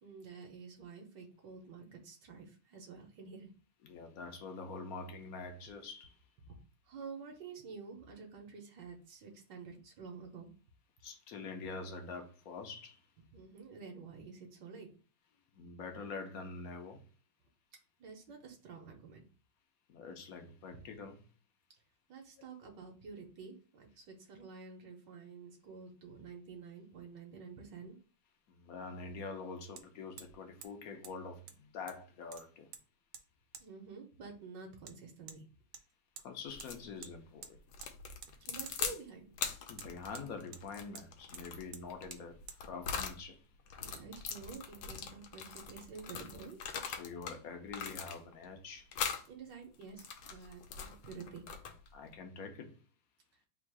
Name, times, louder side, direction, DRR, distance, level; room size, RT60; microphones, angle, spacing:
voice 1, 0.0-3.5 6.5-6.6 6.8-10.5 13.3-14.9 18.0-19.3 22.1-28.0 33.6-35.4 38.4-39.3 43.8-46.6 49.3-51.4, right 5 dB, 70° right, 1.4 m, -49 dB
voice 2, 3.8-6.2 11.0-13.0 15.5-17.0 19.9-21.2 28.5-32.7 36.2-37.6 39.7-43.5 46.9-48.9 51.9-52.8, left 4 dB, 65° left, 0.9 m, -45 dB
Hammer, 27.8-27.9 29.8-29.9 30.2-30.4 30.6-30.7 31.0-31.1 31.5-32.0 32.3-32.8 33.1-33.2 33.5-33.7 34.9-35.0 35.3-35.4 35.7-36.3 36.6-36.7 37.0-37.1 37.4-37.9 38.2-38.4 38.7-38.8 39.8-40.6 41.0-41.1 41.3-41.4 41.7-41.8 42.1-42.2 42.5-42.6, right 7 dB, 90° right, 1.3 m, -51 dB
sound 1, 36.5-36.8 37.7-39.0 39.3-43.2 43.7-47.4 47.7-48.4 48.9-49.3 49.8-51.9, left 6 dB, 85° left, 1.4 m, -41 dB
3.6 x 2.4 x 4.6 m
omnidirectional pair, 2.1 m